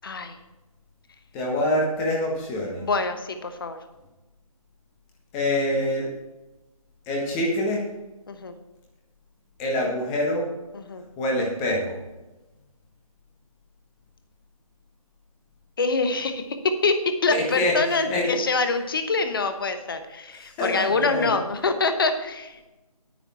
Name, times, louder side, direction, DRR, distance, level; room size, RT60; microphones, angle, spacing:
voice 1, 0.0-0.4 2.8-3.8 8.3-8.5 10.7-11.0 15.8-22.7, left 3 dB, 40° left, 8 dB, 1.1 m, -25 dB
voice 2, 1.3-2.8 5.3-6.1 7.1-7.8 9.6-10.5 11.2-12.0 17.3-18.3 20.4-21.3, left 1 dB, 10° left, -1 dB, 1.4 m, -25 dB
10.0 x 9.9 x 4.3 m, 1.0 s
figure-of-eight pair, 165°, 19 cm